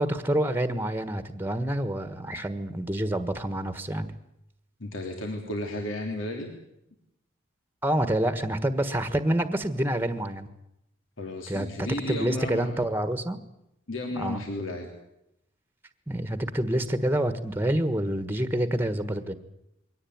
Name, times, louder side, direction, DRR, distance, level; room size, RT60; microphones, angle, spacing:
voice 1, 0.0-4.1 7.8-10.5 11.5-13.4 14.2-14.4 16.1-19.3, right 1 dB, 10° right, 12 dB, 1.4 m, -27 dB
voice 2, 4.8-6.5 11.2-12.8 13.9-14.9, left 1 dB, 85° left, 2 dB, 3.2 m, -33 dB
23.0 x 17.5 x 9.5 m, 0.85 s
head